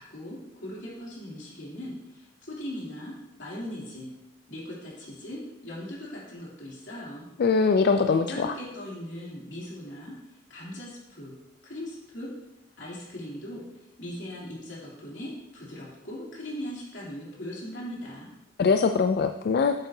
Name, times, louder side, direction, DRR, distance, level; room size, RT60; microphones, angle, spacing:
voice 1, 0.0-4.1 4.5-7.3 8.1-10.1 10.5-11.3 11.6-12.3 12.8-13.6 14.0-18.3, left 1 dB, 80° left, -6 dB, 3.0 m, -39 dB
voice 2, 7.4-8.5 18.6-19.7, left 5 dB, 60° left, 7 dB, 0.3 m, -22 dB
8.2 x 7.7 x 2.7 m, 0.95 s
head